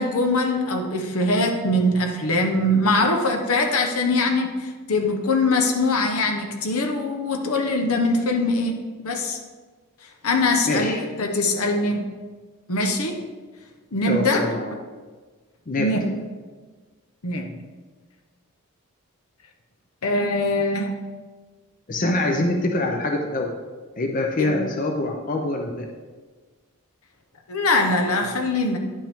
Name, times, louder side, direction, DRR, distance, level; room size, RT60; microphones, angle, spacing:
voice 1, 0.0-9.4 10.2-12.1 12.7-13.2 13.9-14.5 15.8-16.0 17.2-17.5 20.0-20.9 24.4-24.6 27.5-28.8, left 2 dB, 75° left, 4 dB, 0.9 m, -22 dB
voice 2, 10.7-11.0 14.1-14.8 15.7-15.9 21.9-23.5 24.0-25.9, left 2 dB, 35° left, 2 dB, 0.6 m, -24 dB
10.0 x 5.4 x 3.6 m, 1.4 s
head